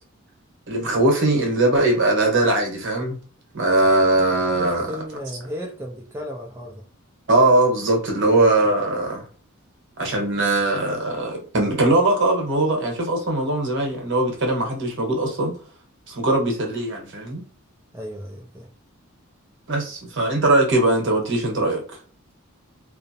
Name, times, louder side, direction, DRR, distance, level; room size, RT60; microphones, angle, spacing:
voice 1, 0.7-3.2 3.5-4.9 7.3-9.2 10.0-15.5 16.1-17.4 19.7-21.8, right 2 dB, 60° right, 0.9 m, -20 dB
voice 2, 4.6-6.8 17.9-18.7, equal, 10° right, 0.3 m, -34 dB
2.3 x 2.0 x 2.6 m
head